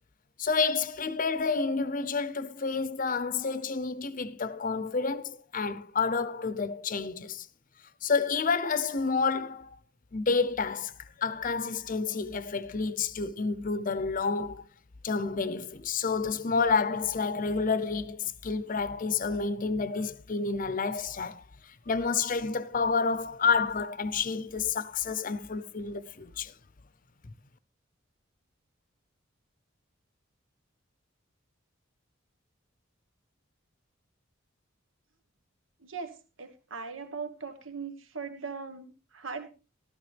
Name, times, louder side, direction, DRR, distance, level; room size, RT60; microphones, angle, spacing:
voice 1, 0.4-7.5 8.0-9.8 10.1-10.9 11.2-14.6 15.0-21.4 21.9-26.5, left 4 dB, 40° left, 0.7 m, -29 dB
voice 2, 35.8-36.1 36.4-39.5, right 5 dB, 80° right, 1.4 m, -39 dB
14.0 x 13.0 x 3.4 m
head